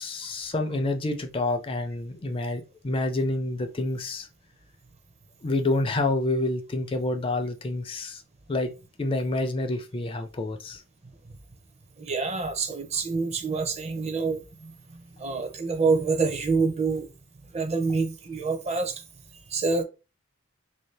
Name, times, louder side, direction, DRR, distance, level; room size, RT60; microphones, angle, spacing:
voice 1, 0.0-4.3 5.4-8.2 8.5-8.7 9.0-10.8, left 2 dB, 25° left, 0.4 m, -28 dB
voice 2, 11.0-11.4 12.0-17.1 17.5-19.0 19.3-19.8, right 4 dB, 30° right, 0.6 m, -27 dB
3.4 x 2.7 x 3.2 m
head